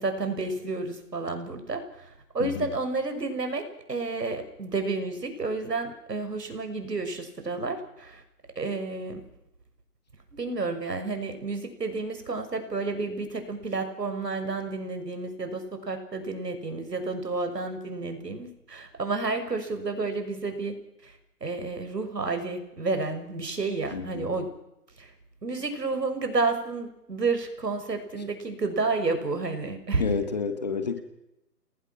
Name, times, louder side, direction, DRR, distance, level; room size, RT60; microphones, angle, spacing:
voice 1, 0.0-8.2 8.6-9.2 10.3-20.8 21.0-24.5 25.0-25.1 25.4-30.0, right 3 dB, 85° right, 7 dB, 6.2 m, -31 dB
voice 2, 2.4-2.7 23.9-24.4 30.0-31.0, left 5 dB, 25° left, 9 dB, 1.8 m, -29 dB
29.0 x 20.0 x 6.0 m, 0.85 s
hypercardioid pair, 170°, 47 cm